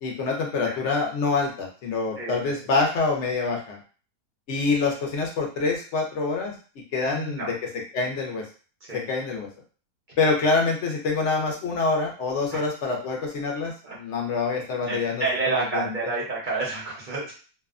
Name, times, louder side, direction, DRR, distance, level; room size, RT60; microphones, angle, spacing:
voice 1, 0.0-3.8 4.5-6.5 6.9-7.6 7.9-8.5 8.9-9.5 10.2-15.9, left 4 dB, 65° left, 0 dB, 0.8 m, -26 dB
voice 2, 2.2-2.5 7.0-7.5 8.9-9.1 12.5-12.6 13.8-13.9 14.8-17.3, right 3 dB, 45° right, -5 dB, 0.7 m, -29 dB
2.6 x 2.1 x 2.4 m, 0.38 s
omnidirectional pair, 1.6 m